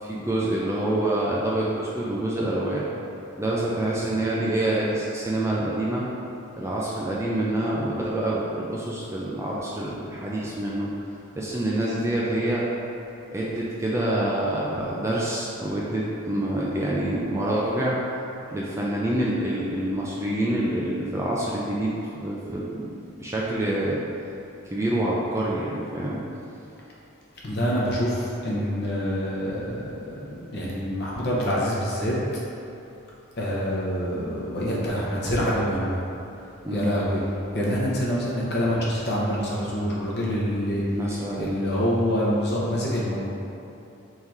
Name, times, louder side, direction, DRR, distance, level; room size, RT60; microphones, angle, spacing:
voice 1, 0.0-2.8 3.4-6.0 6.6-10.9 11.4-12.6 13.3-18.0 18.5-22.9 23.2-24.0 24.7-26.2 36.6-36.9 40.9-41.5, right 1 dB, 15° right, -5 dB, 0.3 m, -26 dB
voice 2, 27.4-32.2 33.4-36.0 36.7-37.2 37.5-40.8 41.4-43.2, equal, 50° left, -6 dB, 0.8 m, -26 dB
3.7 x 2.8 x 4.6 m, 2.9 s
head